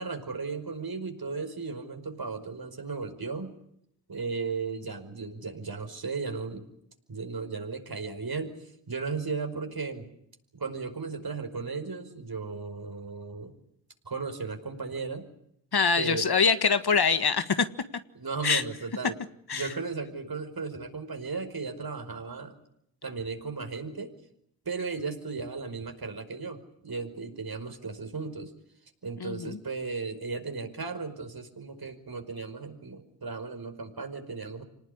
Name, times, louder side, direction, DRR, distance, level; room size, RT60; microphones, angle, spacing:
voice 1, 0.0-3.6 4.1-6.6 7.1-10.1 10.5-13.5 14.1-15.3 16.0-16.3 18.2-19.2 19.5-22.5 23.0-24.1 24.7-28.5 29.0-34.6, right 4 dB, 55° right, 7 dB, 5.3 m, -35 dB
voice 2, 15.7-17.7 18.4-18.6 19.5-19.7 29.2-29.6, left 5 dB, 60° left, 11 dB, 1.7 m, -24 dB
26.0 x 19.5 x 10.0 m, 0.73 s
cardioid pair, 50°, 45 cm